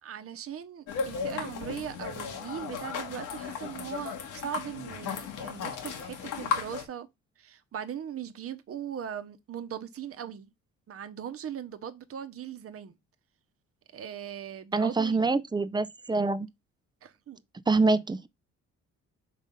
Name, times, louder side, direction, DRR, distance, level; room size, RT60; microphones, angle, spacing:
voice 1, 0.0-7.1 7.4-10.5 10.9-13.0 13.9-15.2 17.0-17.4, right 9 dB, 50° right, 0.9 m, -39 dB
sound 1, 0.9-6.8, left 6 dB, 85° left, 1.6 m, -35 dB
voice 2, 14.7-16.5 17.7-18.3, right 3 dB, 15° right, 0.5 m, -25 dB
5.1 x 3.6 x 5.4 m
cardioid pair, 90°, 30 cm